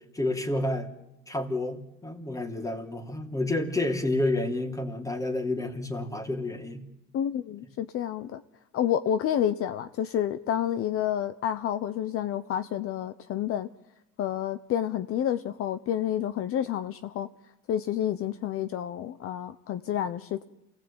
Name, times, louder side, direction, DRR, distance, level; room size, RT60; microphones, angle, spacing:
voice 1, 0.1-0.9 1.3-6.8, left 2 dB, 10° left, 6 dB, 3.1 m, -29 dB
voice 2, 7.1-8.4 8.7-13.7 14.2-17.3 17.7-20.4, left 10 dB, 50° left, 12 dB, 1.0 m, -29 dB
27.5 x 18.0 x 8.9 m, 0.93 s
cardioid pair, 120°, 29 cm